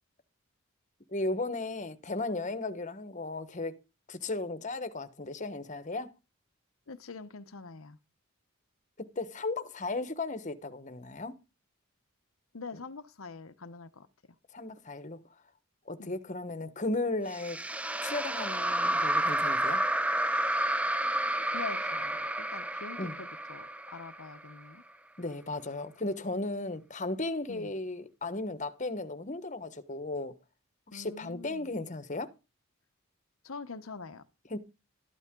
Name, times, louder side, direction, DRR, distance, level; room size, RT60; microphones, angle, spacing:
voice 1, 1.1-3.8 4.1-6.1 9.0-11.4 14.5-15.2 15.9-17.6 18.0-19.8 23.0-23.1 25.2-30.4 30.9-32.3 34.5-34.6, left 2 dB, 35° left, 1.2 m, -35 dB
voice 2, 6.9-8.0 12.5-14.1 16.0-16.1 21.5-24.8 27.5-27.7 30.9-31.7 33.4-34.2, left 4 dB, 75° left, 0.9 m, -44 dB
sound 1, 17.3-24.6, right 1 dB, 5° right, 0.6 m, -30 dB
13.0 x 11.5 x 3.8 m
head